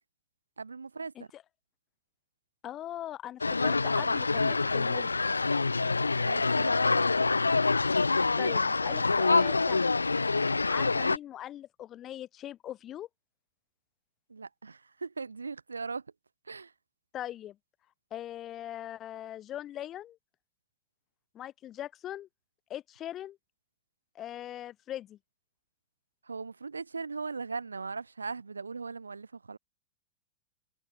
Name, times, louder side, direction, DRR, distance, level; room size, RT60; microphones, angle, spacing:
voice 1, 0.6-1.3 6.2-7.1 14.3-16.1 16.4-16.7 26.2-29.6, right 4 dB, 80° right, 3.6 m, -39 dB
voice 2, 2.6-5.1 8.4-9.9 10.7-13.1 17.1-17.6 18.1-20.2 21.3-22.3 22.7-23.4 24.2-25.2, left 12 dB, 30° left, 2.0 m, -41 dB
sound 1, 3.4-11.2, left 3 dB, 80° left, 1.2 m, -26 dB
figure-of-eight pair, 95°, 0 cm